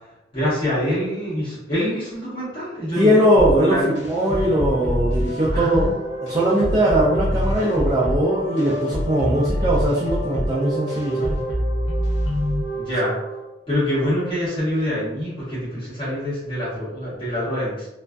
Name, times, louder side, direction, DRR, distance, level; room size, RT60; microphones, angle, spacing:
voice 1, 0.3-3.9 5.5-5.9 12.8-13.2 13.7-17.9, equal, 30° left, -12 dB, 1.0 m, -25 dB
voice 2, 3.0-5.9 6.2-11.4, right 1 dB, 20° right, -7 dB, 0.3 m, -20 dB
sound 1, 3.4-13.5, equal, 85° left, 0.6 m, -25 dB
2.3 x 2.3 x 2.2 m, 0.94 s
head